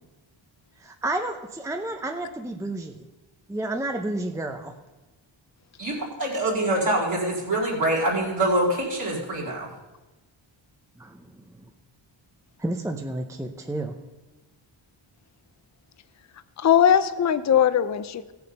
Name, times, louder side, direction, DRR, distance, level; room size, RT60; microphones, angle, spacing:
voice 1, 0.8-3.0 3.5-4.7 11.0-11.4 12.6-14.0, right 2 dB, 5° right, 4 dB, 0.6 m, -31 dB
voice 2, 5.8-9.7, right 1 dB, 45° right, -6 dB, 2.2 m, -25 dB
voice 3, 16.6-18.3, left 9 dB, 35° left, 14 dB, 0.5 m, -20 dB
16.5 x 7.0 x 5.3 m, 1.1 s
wide cardioid pair, 170°, 48 cm